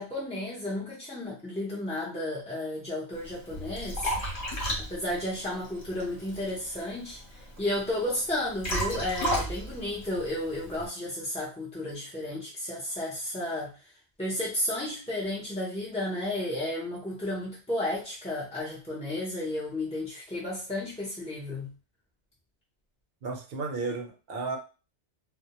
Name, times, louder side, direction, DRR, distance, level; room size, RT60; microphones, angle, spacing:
voice 1, 0.0-4.1 4.8-7.2 7.6-13.7 14.2-21.7, left 1 dB, 10° left, -7 dB, 0.4 m, -33 dB
Liquid, 3.1-10.9, equal, 45° left, 0.8 m, -35 dB
voice 2, 23.2-24.6, right 4 dB, 60° right, 3 dB, 0.8 m, -33 dB
2.2 x 2.1 x 2.9 m, 0.33 s
omnidirectional pair, 1.2 m